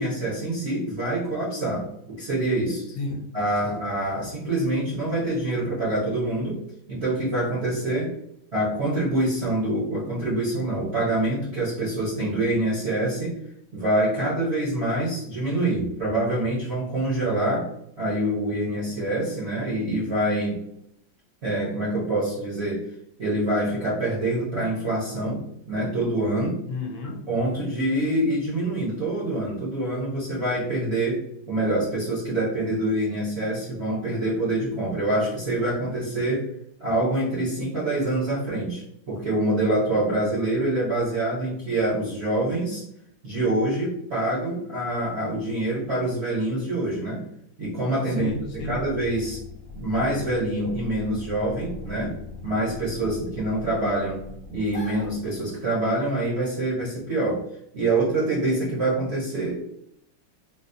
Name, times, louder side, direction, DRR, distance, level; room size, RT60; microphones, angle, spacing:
voice 1, 0.0-2.9 3.3-6.6 6.9-8.1 8.5-13.4 13.7-17.7 18.0-20.6 21.4-22.8 23.2-26.6 27.3-36.5 36.8-42.9 43.2-47.2 47.6-48.3 48.6-49.4 49.7-54.2 54.5-57.4 57.7-59.5, right 1 dB, 65° right, -6 dB, 0.6 m, -25 dB
voice 2, 2.8-3.3 3.6-3.9 26.7-27.3 48.0-48.8, left 2 dB, 75° left, 1 dB, 1.4 m, -33 dB
sound 1, 48.3-55.8, left 4 dB, 55° left, 0.7 m, -41 dB
4.0 x 2.1 x 2.5 m, 0.75 s
omnidirectional pair, 2.4 m